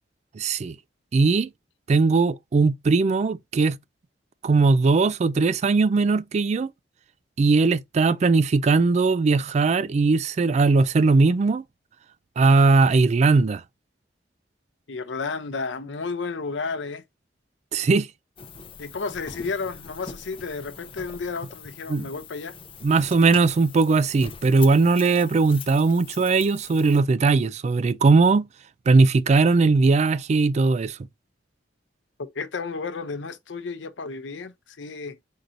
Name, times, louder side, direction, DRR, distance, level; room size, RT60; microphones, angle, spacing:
voice 1, 0.4-0.8 1.1-1.5 1.9-3.8 4.4-6.7 7.4-11.6 12.4-13.6 17.7-18.1 21.9-22.1 22.8-28.5 28.9-31.0, right 3 dB, 40° right, 0.3 m, -19 dB
voice 2, 14.9-17.0 18.8-22.5 32.2-35.2, left 4 dB, 90° left, 0.6 m, -32 dB
sound 1, 18.4-27.0, left 5 dB, 30° left, 0.6 m, -42 dB
4.6 x 2.6 x 3.8 m
head